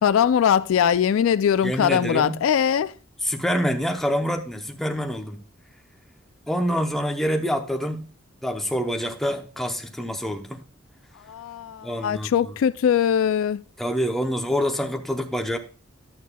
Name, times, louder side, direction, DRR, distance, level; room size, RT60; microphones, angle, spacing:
voice 1, 0.0-2.9 11.3-13.6, left 8 dB, 85° left, 0.3 m, -21 dB
voice 2, 1.6-2.4 3.2-5.4 6.5-8.1 8.4-10.6 11.8-12.5 13.8-15.6, equal, ahead, 0.7 m, -26 dB
11.0 x 8.2 x 2.2 m
head